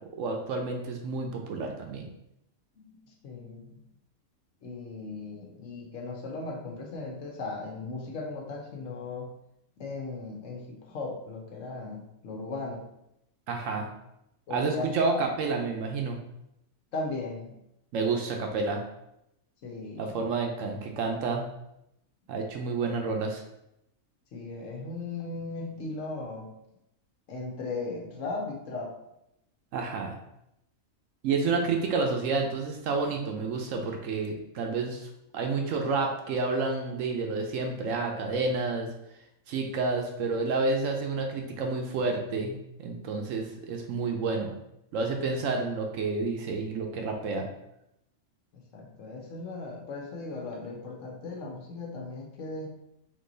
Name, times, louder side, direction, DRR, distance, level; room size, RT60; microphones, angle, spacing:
voice 1, 0.1-2.1 13.5-13.9 14.5-16.2 17.9-18.8 20.0-21.5 22.3-23.4 29.7-30.1 31.2-38.9 39.5-44.5 44.9-47.5, right 4 dB, 70° right, 3 dB, 1.0 m, -29 dB
voice 2, 2.8-3.8 4.6-9.3 9.8-12.9 14.5-15.2 16.9-17.5 19.6-20.2 24.3-26.5 27.3-29.0 48.7-52.7, left 3 dB, 65° left, 1 dB, 1.1 m, -37 dB
3.7 x 2.9 x 3.9 m, 0.81 s
omnidirectional pair, 1.5 m